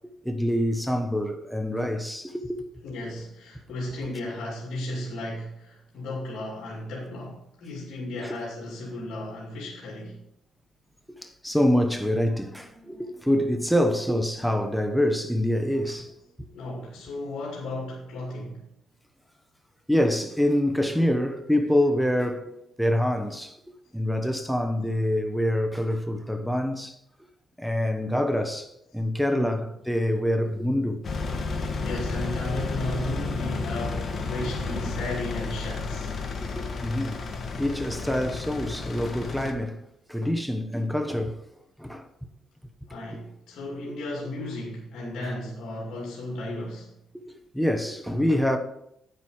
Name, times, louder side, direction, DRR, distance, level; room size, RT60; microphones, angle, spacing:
voice 1, 0.2-2.6 8.2-8.4 11.2-16.5 19.9-23.6 23.9-26.9 27.6-31.0 31.5-31.6 36.4-37.2 37.6-39.8 40.1-41.4 41.8-42.0 47.1-47.2 47.5-48.6, left 1 dB, ahead, 1.0 m, -26 dB
voice 2, 2.8-10.2 16.5-18.6 29.3-29.6 31.5-36.2 42.9-46.9, left 1 dB, 70° left, 2.5 m, -35 dB
Engine, 31.0-39.5, left 3 dB, 45° left, 1.5 m, -32 dB
8.9 x 7.6 x 4.9 m
cardioid pair, 90°, 0 cm